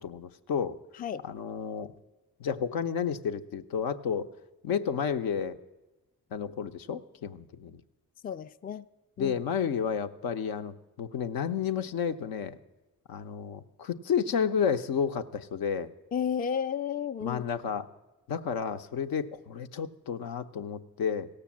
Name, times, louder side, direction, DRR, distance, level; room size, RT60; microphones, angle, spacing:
voice 1, 0.0-0.8 1.2-1.9 2.4-4.3 4.6-5.6 6.3-7.8 9.2-12.6 13.1-15.9 17.2-17.8 18.3-21.3, left 7 dB, 75° left, 0.6 m, -31 dB
voice 2, 8.2-8.8 9.2-9.4 16.1-17.4, left 8 dB, 25° left, 0.4 m, -32 dB
16.0 x 6.8 x 7.3 m
supercardioid pair, 50°, 36 cm